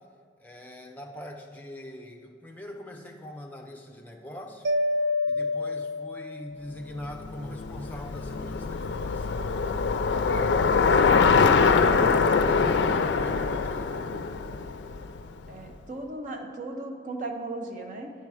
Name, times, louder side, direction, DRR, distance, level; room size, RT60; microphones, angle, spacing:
voice 1, 0.4-4.7 5.2-9.5 10.2-14.3, left 1 dB, 10° left, 2 dB, 0.6 m, -42 dB
Mallet percussion, 4.6-6.7, left 2 dB, 80° right, 0.4 m, -28 dB
Bicycle, 7.1-15.4, left 5 dB, 75° left, 0.4 m, -23 dB
voice 2, 15.5-18.1, right 2 dB, 45° right, 3 dB, 0.8 m, -36 dB
9.8 x 4.5 x 4.8 m, 2.1 s
head